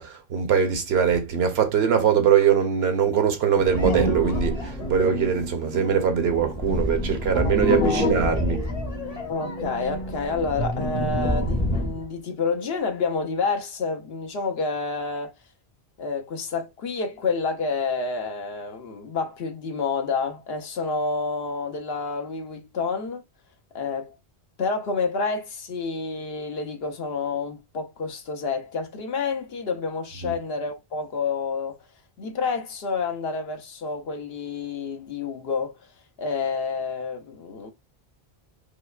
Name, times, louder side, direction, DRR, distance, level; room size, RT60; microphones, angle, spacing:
voice 1, 0.0-8.6 30.2-30.3, right 7 dB, 70° right, 1.0 m, -22 dB
sound 1, 3.5-12.1, left 1 dB, 35° left, 0.9 m, -27 dB
voice 2, 7.3-8.1 9.3-15.4 16.0-23.2 23.7-24.1 24.6-31.8 32.2-35.7 36.2-37.7, left 4 dB, 65° left, 0.9 m, -29 dB
4.9 x 2.2 x 2.3 m
omnidirectional pair, 1.1 m